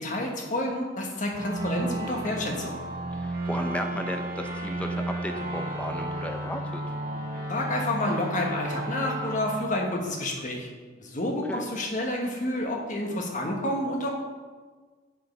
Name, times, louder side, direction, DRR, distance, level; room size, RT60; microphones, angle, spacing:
voice 1, 0.0-2.7 7.5-10.7 11.0-14.1, left 1 dB, 40° left, 0 dB, 1.3 m, -29 dB
sound 1, 1.3-10.7, right 1 dB, 50° right, 1.0 m, -33 dB
voice 2, 3.1-6.8 11.5-11.6, left 1 dB, 5° left, 4 dB, 0.7 m, -34 dB
7.3 x 5.2 x 5.4 m, 1.4 s
head